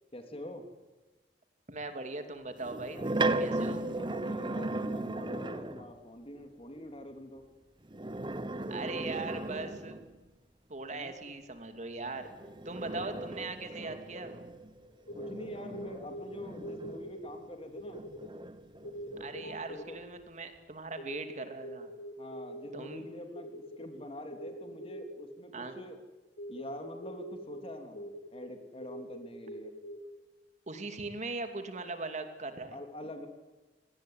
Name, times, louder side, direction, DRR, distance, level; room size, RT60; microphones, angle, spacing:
voice 1, 0.1-0.6 3.5-7.4 10.9-11.1 15.1-18.0 19.7-20.0 22.2-26.0 26.5-29.7 32.7-33.3, left 1 dB, 30° left, 6 dB, 3.3 m, -45 dB
voice 2, 1.7-3.9 8.7-10.0 10.7-12.3 12.6-14.4 19.2-21.9 22.7-23.0 25.5-25.8 30.7-32.8, right 3 dB, 40° right, 7 dB, 2.8 m, -40 dB
sound 1, 2.6-5.9 7.8-10.2 12.1-17.4 17.9-19.6, right 2 dB, 25° right, 1.1 m, -36 dB
sound 2, 14.9-16.3 16.6-17.3 17.6-18.3 18.8-19.9 21.0-23.0 23.3-23.9 24.3-25.3 26.4-27.6 27.9-28.5 28.8-30.0, equal, 75° left, 4.9 m, -44 dB
26.0 x 19.5 x 9.5 m, 1.2 s
head